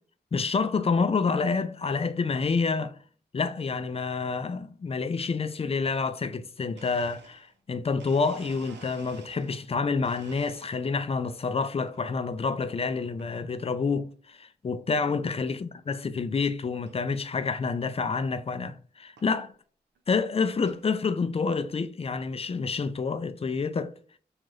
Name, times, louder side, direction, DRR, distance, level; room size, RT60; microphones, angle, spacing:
voice 1, 0.3-3.0 3.3-19.5 20.1-23.9, left 4 dB, 35° left, 0.4 m, -28 dB
Domestic sounds home sounds, 6.8-9.7 10.0-11.1 11.5-12.0 13.0-13.3 13.9-14.0 14.9-15.0 15.3-15.6 16.0-16.1 16.3-16.4 16.9-17.0 18.3-18.4 19.2-19.3 20.0-20.9, right 5 dB, 90° right, 0.5 m, -52 dB
2.6 x 2.4 x 3.2 m
cardioid pair, 50°, 17 cm